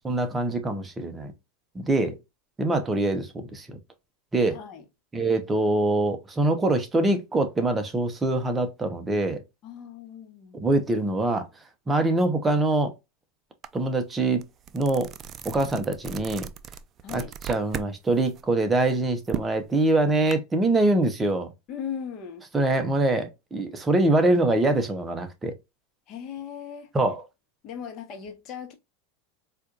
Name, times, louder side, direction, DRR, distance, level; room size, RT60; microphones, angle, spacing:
voice 1, 0.0-1.3 1.7-2.2 2.6-3.8 4.3-4.6 5.1-9.4 10.6-11.5 11.9-12.9 13.7-14.4 14.7-15.1 15.4-16.5 17.1-17.2 17.5-21.5 22.5-25.5 26.9-27.2, right 2 dB, 15° right, 0.7 m, -24 dB
voice 2, 4.5-4.8 9.6-10.6 17.0-17.3 21.7-22.4 26.1-26.9 27.6-28.7, left 8 dB, 45° left, 1.0 m, -38 dB
sound 1, 13.6-13.8 14.2-17.9 18.3-20.3, right 8 dB, 35° right, 0.3 m, -37 dB
4.2 x 2.4 x 2.3 m
supercardioid pair, 120°, 0 cm